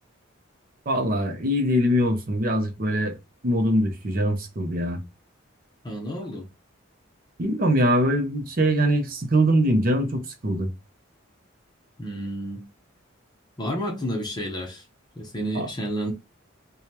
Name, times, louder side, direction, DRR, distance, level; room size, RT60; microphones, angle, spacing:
voice 1, 0.9-3.1 3.4-5.0 7.4-10.7 15.5-15.7, equal, 45° right, 0.7 m, -23 dB
voice 2, 5.8-6.4 12.0-12.7 13.6-14.8 15.2-16.1, equal, 20° left, 0.8 m, -30 dB
4.8 x 2.3 x 2.8 m
head